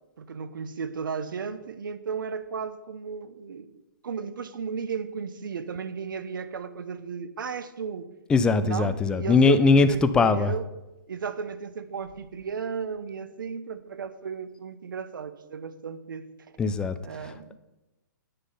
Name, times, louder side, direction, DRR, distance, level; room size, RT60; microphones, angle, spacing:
voice 1, 0.2-3.8 4.0-8.1 8.6-10.6 11.1-16.3 17.0-17.6, right 6 dB, 85° right, 13 dB, 0.9 m, -34 dB
voice 2, 8.3-10.5 16.6-17.3, left 4 dB, 10° left, 12 dB, 0.4 m, -21 dB
9.3 x 6.8 x 5.6 m, 1.0 s
hypercardioid pair, 150°, 11 cm